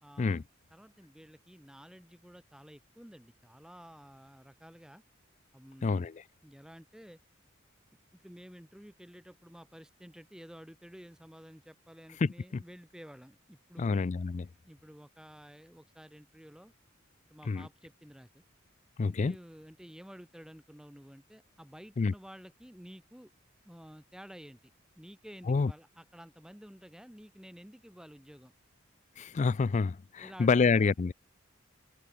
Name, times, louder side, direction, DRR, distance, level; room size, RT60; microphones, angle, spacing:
voice 1, 0.0-5.0 5.5-6.1 6.4-7.2 8.2-14.1 14.6-16.7 17.3-18.4 19.0-23.3 23.6-24.6 24.9-28.5 30.2-30.9, equal, 5° right, 1.0 m, -52 dB
voice 2, 5.8-6.1 12.2-12.6 13.8-14.5 17.5-17.7 19.0-19.3 22.0-22.1 25.5-25.7 29.2-31.1, left 4 dB, 35° left, 0.4 m, -28 dB
head